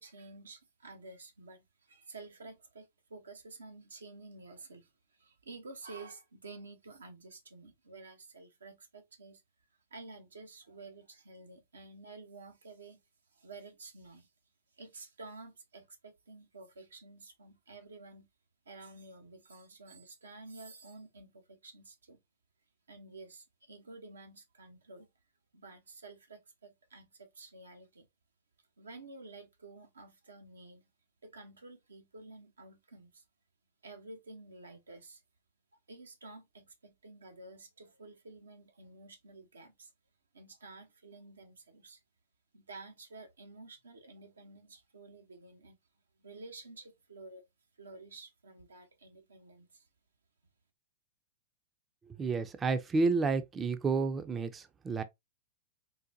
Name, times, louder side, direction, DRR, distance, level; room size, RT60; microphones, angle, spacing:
voice 1, 0.0-9.4 9.9-13.0 13.3-14.3 14.7-18.3 18.7-22.2 22.9-25.1 25.5-28.1 28.8-30.8 31.2-33.2 33.8-35.2 35.9-39.9 40.3-42.0 42.5-45.8 46.2-47.4 47.8-49.9, right 3 dB, 90° right, 0.8 m, -51 dB
voice 2, 52.2-55.0, right 4 dB, 20° right, 0.4 m, -30 dB
3.9 x 2.2 x 2.6 m
hypercardioid pair, 110°, 0 cm